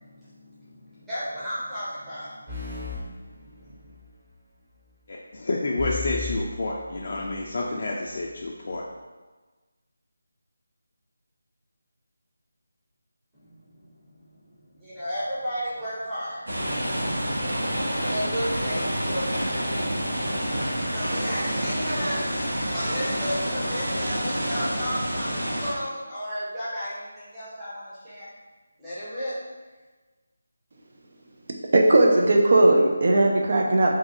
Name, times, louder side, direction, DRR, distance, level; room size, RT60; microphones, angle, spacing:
voice 1, 0.0-3.9 13.3-16.7 18.0-19.5 20.9-28.3 28.8-29.4, equal, 10° right, -14 dB, 0.8 m, -34 dB
sound 1, 2.5-4.1 5.8-7.5, left 4 dB, 25° right, 1.2 m, -36 dB
voice 2, 5.1-8.8, left 2 dB, 50° left, -3 dB, 0.3 m, -29 dB
sound 2, 16.5-25.7, equal, 75° right, 1.0 m, -28 dB
voice 3, 31.7-34.0, right 2 dB, 50° right, 0 dB, 0.4 m, -18 dB
2.5 x 2.4 x 3.9 m, 1.3 s
figure-of-eight pair, 160°, 0 cm